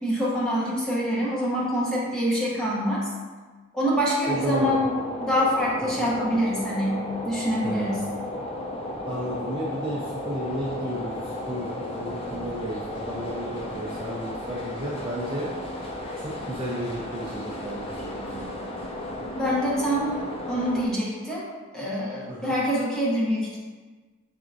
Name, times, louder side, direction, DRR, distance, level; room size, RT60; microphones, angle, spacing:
voice 1, 0.0-3.1 3.7-4.9 5.2-8.0 19.4-20.2 20.5-21.5 21.7-23.6, equal, 5° left, -7 dB, 0.8 m, -25 dB
sound 1, 4.3-20.9, left 1 dB, 30° left, 0.4 m, -34 dB
voice 2, 4.3-4.7 6.0-6.1 7.6-8.1 9.1-15.5 16.2-18.7 22.3-22.6, right 1 dB, 25° right, -6 dB, 0.5 m, -33 dB
4.2 x 3.6 x 2.6 m, 1.4 s
head